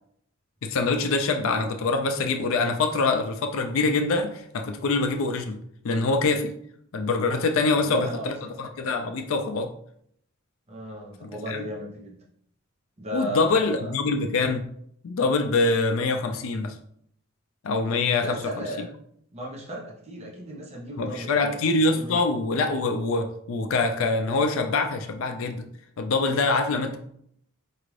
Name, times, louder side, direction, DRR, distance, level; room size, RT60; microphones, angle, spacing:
voice 1, 0.6-5.6 5.8-6.5 6.9-9.7 11.2-11.6 13.1-14.6 15.0-16.7 17.6-18.7 21.0-25.6 26.0-27.0, left 3 dB, 80° left, 5 dB, 0.4 m, -24 dB
voice 2, 7.7-8.6 10.7-12.2 13.0-13.9 18.2-18.9 19.3-22.2 26.9-27.0, equal, 30° right, -3 dB, 0.8 m, -35 dB
4.6 x 2.5 x 3.2 m, 0.68 s
head